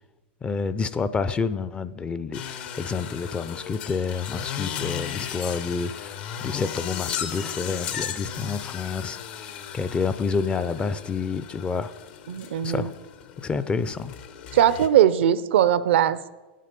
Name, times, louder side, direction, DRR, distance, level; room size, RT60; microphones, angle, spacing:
voice 1, 0.4-6.2 6.4-9.2 9.7-11.9 12.6-12.9 13.4-14.1, left 5 dB, 15° left, 14 dB, 0.4 m, -28 dB
sound 1, 2.3-14.9, left 9 dB, 60° left, 0.9 m, -36 dB
voice 2, 12.3-12.9 14.5-16.2, right 10 dB, 75° right, 16 dB, 0.5 m, -20 dB
9.2 x 7.5 x 5.2 m, 1.2 s
hypercardioid pair, 120°, 6 cm